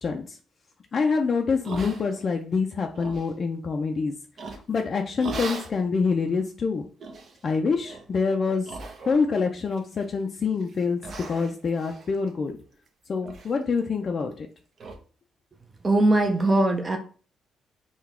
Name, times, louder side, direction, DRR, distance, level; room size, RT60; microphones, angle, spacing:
voice 1, 0.0-0.4 0.9-4.1 4.7-6.9 7.4-8.8 9.0-11.0 11.3-12.6 13.1-14.5, left 5 dB, 45° left, 3 dB, 0.5 m, -26 dB
sound 1, 1.6-2.4 2.8-3.3 4.4-4.8 5.2-5.8 6.3-6.4 7.0-7.4 7.8-8.1 8.6-9.4 9.7-10.2 10.6-10.7 11.0-12.9 13.2-13.5 13.8-13.9 14.3-14.4 14.8-15.0, right 3 dB, 55° right, 0.8 m, -39 dB
voice 2, 15.8-17.0, right 2 dB, 25° right, 4 dB, 0.6 m, -20 dB
3.9 x 2.3 x 4.2 m, 0.39 s
cardioid pair, 90°, 0 cm